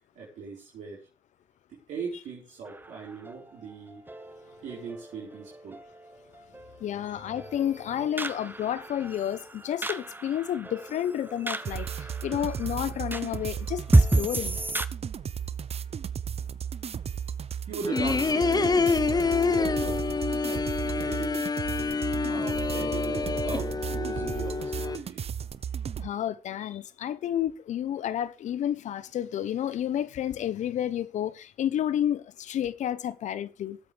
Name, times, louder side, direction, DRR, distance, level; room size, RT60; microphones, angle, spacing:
voice 1, 0.1-1.0 1.7-4.0 4.6-5.8 7.0-7.3 17.7-20.1 20.4-21.4 22.0-25.2, right 5 dB, 85° right, 4.6 m, -39 dB
sound 1, 2.7-14.9, right 2 dB, 15° right, 1.0 m, -31 dB
voice 2, 6.8-14.6 26.0-33.8, left 10 dB, 80° left, 0.9 m, -31 dB
sound 2, 11.6-26.1, right 8 dB, 55° right, 0.7 m, -35 dB
sound 3, 17.9-25.0, left 4 dB, 35° left, 0.7 m, -27 dB
21.5 x 8.0 x 3.5 m
supercardioid pair, 50°, 12 cm